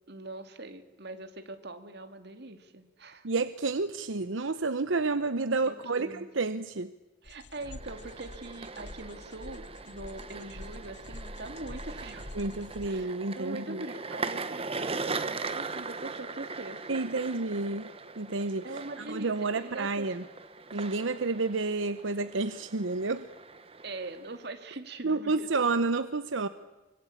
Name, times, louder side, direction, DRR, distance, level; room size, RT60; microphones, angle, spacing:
voice 1, 0.1-3.3 5.7-6.3 7.2-12.3 12.8-17.4 18.6-20.1 23.8-25.7, right 2 dB, 60° right, 8 dB, 2.4 m, -43 dB
voice 2, 3.2-6.9 12.3-13.8 16.9-17.9 18.2-18.6 19.1-20.2 20.7-23.3 25.0-26.5, right 3 dB, 85° right, 11 dB, 0.9 m, -30 dB
sound 1, 7.2-12.9, left 1 dB, 60° left, 1.2 m, -46 dB
sound 2, 7.5-24.5, right 4 dB, 30° right, 1.2 m, -40 dB
24.5 x 24.0 x 8.6 m, 1.1 s
head